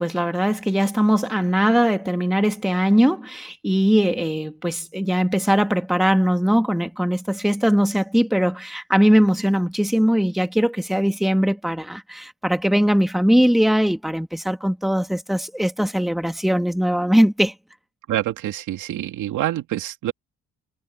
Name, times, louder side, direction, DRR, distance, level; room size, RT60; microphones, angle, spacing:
voice 1, 0.0-17.5, equal, ahead, 1.9 m, -20 dB
voice 2, 18.1-20.1, right 13 dB, 85° right, 2.4 m, -26 dB
cardioid pair, 90°, 30 cm